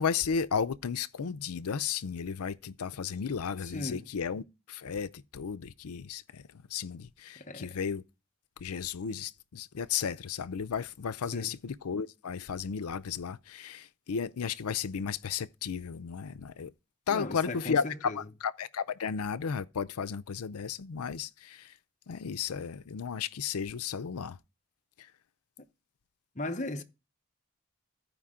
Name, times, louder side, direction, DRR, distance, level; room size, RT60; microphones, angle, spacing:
voice 1, 0.0-4.4 4.7-6.4 6.7-8.0 8.6-16.7 17.1-21.7 22.1-24.4, left 6 dB, 85° left, 0.5 m, -34 dB
voice 2, 3.6-4.1 7.4-7.8 11.3-11.6 17.1-18.2 26.3-26.8, left 2 dB, 35° left, 0.8 m, -37 dB
14.5 x 5.1 x 3.7 m
head